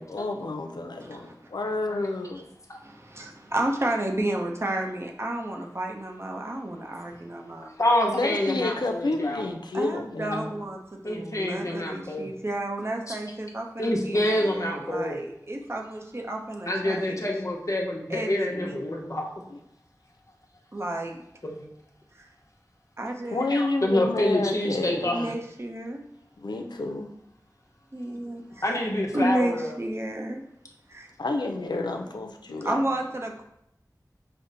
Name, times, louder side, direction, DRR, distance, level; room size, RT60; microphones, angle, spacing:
voice 1, 0.0-2.4 8.1-10.6 18.5-18.7 19.5-19.6 23.3-25.1 26.4-27.1 31.2-32.8, left 2 dB, 85° left, 5 dB, 0.5 m, -30 dB
voice 2, 1.0-1.3 3.1-7.8 9.7-17.2 18.1-19.0 20.7-21.2 23.0-23.4 25.0-26.0 27.9-28.8 29.1-30.4 30.9-31.1 32.6-33.4, right 1 dB, 35° right, 1 dB, 0.6 m, -31 dB
voice 3, 7.8-9.4 11.0-12.3 13.1-13.2 13.8-15.2 16.7-19.3 21.4-21.6 23.5-25.3 28.6-29.7, left 1 dB, 50° left, -1 dB, 0.9 m, -27 dB
5.1 x 2.1 x 3.9 m, 0.78 s
wide cardioid pair, 40°, 7 cm